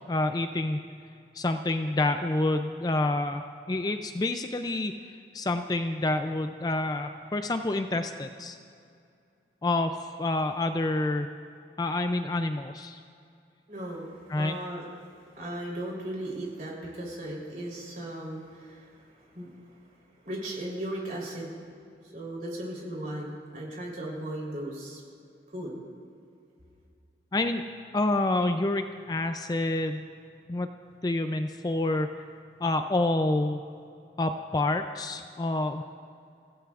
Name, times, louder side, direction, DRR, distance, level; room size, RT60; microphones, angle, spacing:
voice 1, 0.1-0.8 1.3-4.9 5.3-8.6 9.6-11.3 11.8-13.0 14.3-14.6 27.3-27.6 27.9-30.1 30.5-30.7 31.0-32.1 32.6-33.6 34.2-35.8, left 2 dB, 20° left, 7 dB, 0.4 m, -28 dB
voice 2, 13.7-19.8 20.2-21.8 22.1-25.0 25.5-25.8, right 1 dB, 45° right, -3 dB, 3.6 m, -37 dB
26.0 x 16.0 x 2.5 m, 2.4 s
head